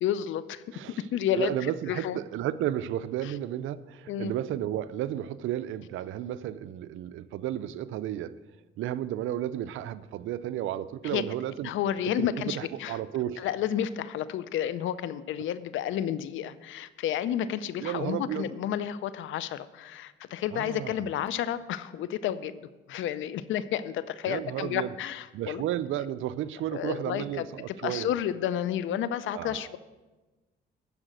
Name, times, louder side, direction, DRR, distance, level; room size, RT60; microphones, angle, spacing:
voice 1, 0.0-0.6 1.0-1.5 1.9-2.2 3.2-3.3 4.1-4.3 11.0-11.2 11.6-13.0 13.4-25.6 26.7-29.8, left 10 dB, 80° left, 16 dB, 0.6 m, -31 dB
voice 2, 1.3-8.3 8.8-11.7 12.2-13.5 17.8-18.5 20.5-21.0 24.3-24.9 25.3-28.1 29.3-29.7, right 12 dB, 80° right, 15 dB, 0.5 m, -33 dB
13.0 x 4.9 x 7.7 m, 1.2 s
cardioid pair, 90°, 20 cm